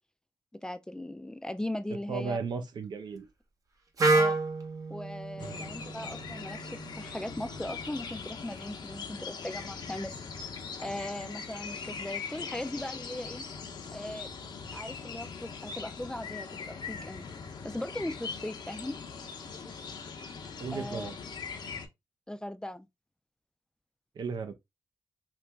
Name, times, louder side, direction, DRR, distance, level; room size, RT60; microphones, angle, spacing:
voice 1, 0.6-2.4 4.1-4.4 4.9-10.2 10.8-13.4 13.9-14.3 14.7-17.3 17.6-18.9 20.7-21.1 22.3-22.9, left 1 dB, 10° left, 0.4 m, -38 dB
voice 2, 1.9-3.3 5.4-5.6 20.6-21.1 24.1-24.5, right 5 dB, 70° right, 0.6 m, -35 dB
Wind instrument woodwind instrument, 4.0-7.9, right 3 dB, 50° right, 0.9 m, -30 dB
sound 1, 5.4-21.9, left 5 dB, 70° left, 0.7 m, -41 dB
2.9 x 2.5 x 3.4 m
cardioid pair, 80°, 8 cm